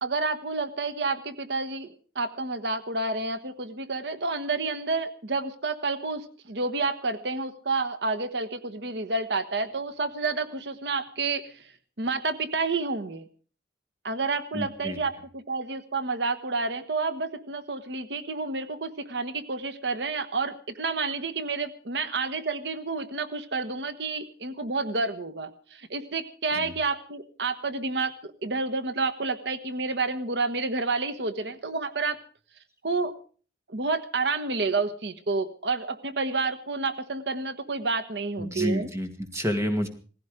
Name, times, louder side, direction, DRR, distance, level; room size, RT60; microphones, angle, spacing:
voice 1, 0.0-1.9 2.1-11.7 12.0-13.2 14.0-32.2 32.8-33.1 33.7-38.9, right 3 dB, 70° right, 12 dB, 1.2 m, -29 dB
voice 2, 14.5-15.0 26.5-26.7 38.4-39.9, equal, 15° right, 6 dB, 2.1 m, -29 dB
18.5 x 15.5 x 5.0 m, 0.40 s
head